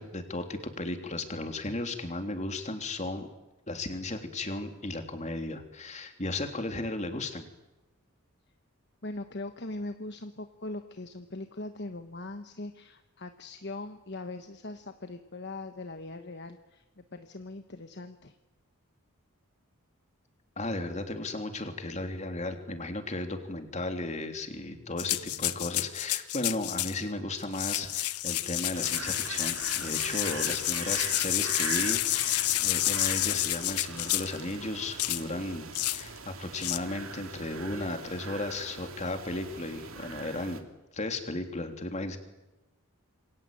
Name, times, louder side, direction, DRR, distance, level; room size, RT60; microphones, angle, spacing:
voice 1, 0.0-3.3 3.7-7.4 20.6-40.6 40.9-42.2, left 2 dB, 30° left, 5 dB, 3.3 m, -35 dB
voice 2, 9.0-18.4, left 2 dB, 50° left, 7 dB, 1.3 m, -41 dB
sound 1, 25.0-27.0 27.4-34.4 35.0-35.2 35.8-36.0 36.6-36.8, left 15 dB, 85° left, 1.0 m, -29 dB
sound 2, 28.7-40.6, right 5 dB, 65° right, 2.8 m, -42 dB
27.5 x 24.0 x 9.0 m, 1.1 s
head